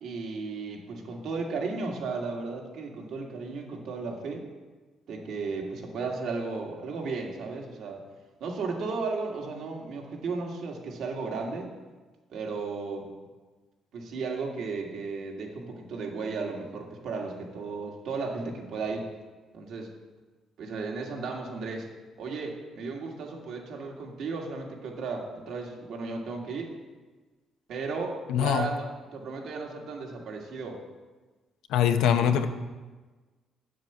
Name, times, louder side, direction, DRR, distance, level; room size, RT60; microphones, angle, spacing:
voice 1, 0.0-4.5 5.1-8.0 8.4-11.7 12.3-13.1 13.9-19.1 19.5-19.9 20.6-21.9 22.2-26.7 27.7-28.8 29.1-30.8, right 4 dB, 70° right, 0 dB, 2.0 m, -34 dB
voice 2, 28.3-28.7 31.7-32.5, left 9 dB, 90° left, 8 dB, 0.7 m, -23 dB
7.7 x 7.6 x 7.0 m, 1.3 s
cardioid pair, 110°, 0 cm